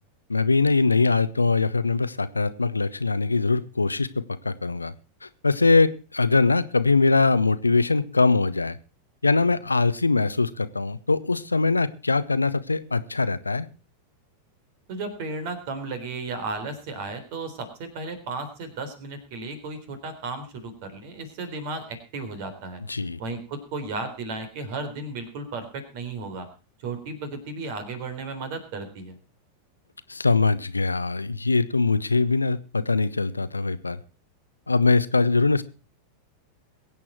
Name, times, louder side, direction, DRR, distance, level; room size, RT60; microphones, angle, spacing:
voice 1, 0.3-4.9 5.2-8.8 9.2-13.7 22.9-23.2 30.1-34.0 34.7-35.6, left 3 dB, 80° left, 15 dB, 0.7 m, -22 dB
voice 2, 14.9-22.8 23.2-26.5 26.8-29.2, right 3 dB, 50° right, 9 dB, 3.7 m, -34 dB
22.5 x 8.7 x 4.4 m, 0.33 s
figure-of-eight pair, 90°, 0 cm